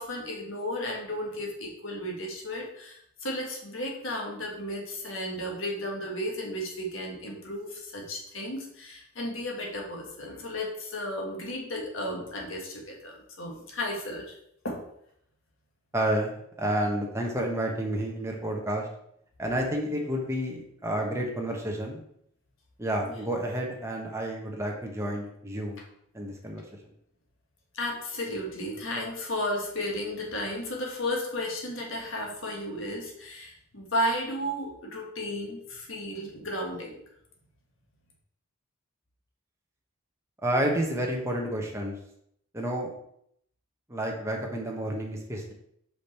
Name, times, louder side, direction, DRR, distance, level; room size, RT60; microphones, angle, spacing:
voice 1, 0.0-14.4 14.6-14.8 23.0-23.2 27.7-37.0, left 1 dB, 60° left, 0 dB, 1.6 m, -34 dB
voice 2, 15.9-18.9 19.4-22.0 22.8-25.8 26.1-26.6 40.4-42.0 42.5-42.9 43.9-45.5, right 1 dB, 15° right, 0 dB, 1.0 m, -30 dB
5.3 x 5.1 x 4.3 m, 0.71 s
head